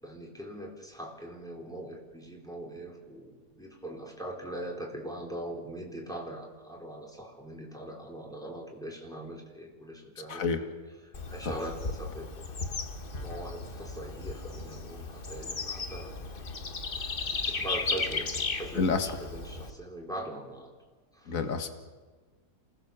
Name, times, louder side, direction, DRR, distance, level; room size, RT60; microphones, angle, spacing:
voice 1, 0.0-10.7 11.0-12.3 13.1-16.2 16.9-18.3 18.6-20.7 21.1-21.4, right 1 dB, ahead, 0 dB, 4.3 m, -41 dB
Bird / Insect, 11.1-19.7, left 3 dB, 35° left, 1.5 m, -35 dB
voice 2, 18.8-19.1 21.3-21.7, left 4 dB, 55° left, 7 dB, 2.2 m, -28 dB
28.0 x 19.5 x 7.2 m, 1.3 s
omnidirectional pair, 1.7 m